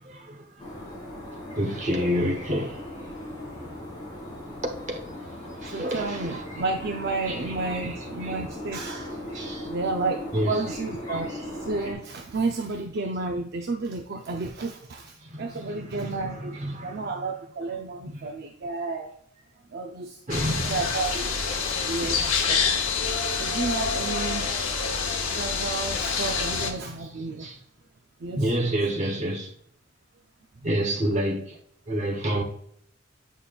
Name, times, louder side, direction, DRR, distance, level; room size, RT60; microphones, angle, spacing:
voice 1, 0.1-0.5 1.6-2.8 4.6-5.0 5.6-6.4 7.3-7.4 7.6-7.9 8.2-8.4 9.3-9.7 10.3-10.7 11.1-11.2 15.2-17.1 18.1-18.3 20.3-20.8 22.0-22.3 26.3-26.4 27.4-27.6 28.4-29.5 30.6-31.6 31.9-32.4, equal, 35° right, 1.0 m, -29 dB
sound 1, 0.6-11.9, left 1 dB, 20° left, 2.2 m, -38 dB
voice 2, 5.6-9.3 9.7-19.1 19.7-20.2 20.7-24.5 25.3-27.5 28.2-28.7 30.6-30.7, right 3 dB, 50° right, 0.5 m, -32 dB
sound 2, 20.3-26.7, left 5 dB, 75° left, 0.9 m, -27 dB
8.5 x 5.5 x 2.4 m
head